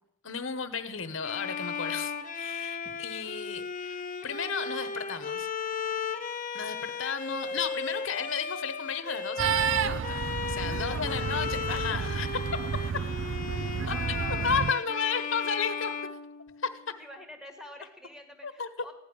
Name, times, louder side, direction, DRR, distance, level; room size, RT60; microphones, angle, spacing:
voice 1, 0.2-5.5 6.5-12.4 13.9-15.9 16.6-16.7 18.4-18.7, left 6 dB, 80° left, 11 dB, 1.2 m, -33 dB
Bowed string instrument, 1.2-17.0, left 5 dB, 40° left, 0.9 m, -35 dB
sound 1, 9.4-14.7, right 7 dB, 70° right, 0.4 m, -31 dB
voice 2, 10.7-12.3 12.6-12.7 13.5-13.6 17.0-18.9, left 1 dB, 5° right, 4 dB, 1.9 m, -47 dB
15.5 x 10.5 x 6.2 m, 0.79 s
head